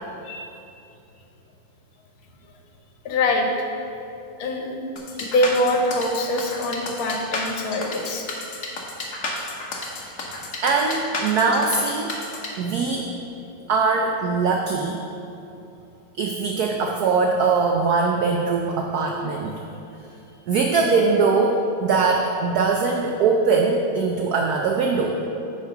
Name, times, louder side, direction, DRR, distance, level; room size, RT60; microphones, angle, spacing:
voice 1, 0.2-0.6 3.1-3.5 4.4-4.8 5.2-8.3 12.8-13.0, left 1 dB, 75° left, 2 dB, 1.6 m, -24 dB
sound 1, 5.0-12.5, left 2 dB, 50° left, 1.0 m, -31 dB
voice 2, 10.6-12.1 12.6-13.0 13.7-15.0 16.2-19.6 20.5-25.2, right 4 dB, 85° right, 1 dB, 0.8 m, -21 dB
8.9 x 3.8 x 5.7 m, 2.8 s
omnidirectional pair, 2.3 m